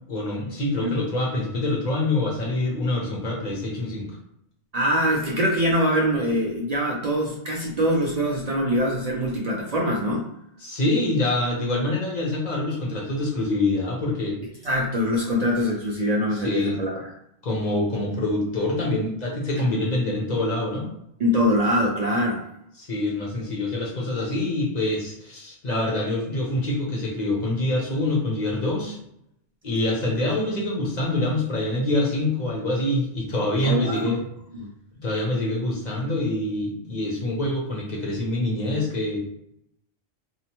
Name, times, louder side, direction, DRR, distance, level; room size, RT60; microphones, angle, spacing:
voice 1, 0.1-4.2 10.6-14.4 16.3-16.8 17.4-20.9 22.8-29.0 29.6-34.2 35.0-39.2, left 2 dB, 45° left, -3 dB, 0.7 m, -25 dB
voice 2, 4.7-10.3 14.6-17.1 21.2-22.4 33.6-34.1 34.5-34.7, equal, 60° right, -2 dB, 0.4 m, -23 dB
2.8 x 2.0 x 2.9 m, 0.77 s
omnidirectional pair, 1.2 m